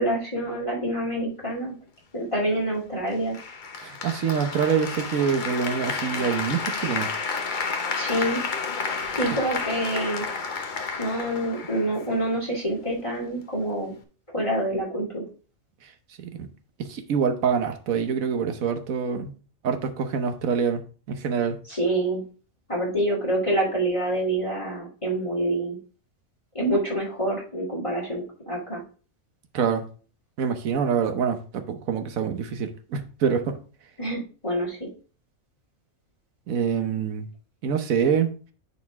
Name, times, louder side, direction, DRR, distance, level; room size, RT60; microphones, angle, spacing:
voice 1, 0.0-1.7 2.1-3.4 7.9-8.4 9.1-10.3 11.0-13.9 14.3-15.3 21.7-22.2 22.7-25.8 26.5-28.8 34.0-34.9, right 1 dB, 25° left, 2.4 m, -27 dB
Applause, 3.3-12.4, left 4 dB, 40° left, 0.9 m, -31 dB
voice 2, 3.8-7.1 16.2-16.5 16.8-19.3 19.6-20.8 21.1-21.6 29.5-29.8 30.4-33.6 36.5-37.3 37.6-38.3, right 7 dB, 90° right, 1.3 m, -25 dB
9.3 x 4.2 x 3.5 m
omnidirectional pair, 1.4 m